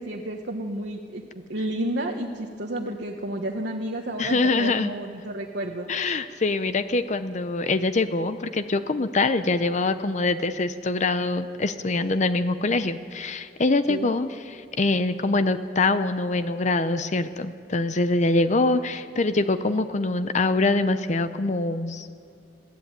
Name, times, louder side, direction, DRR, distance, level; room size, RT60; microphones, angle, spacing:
voice 1, 0.0-5.9 13.9-14.1, right 1 dB, 75° right, 0 dB, 1.4 m, -31 dB
voice 2, 4.2-4.9 5.9-22.2, left 3 dB, 45° left, 11 dB, 0.7 m, -24 dB
20.5 x 14.0 x 9.1 m, 2.5 s
head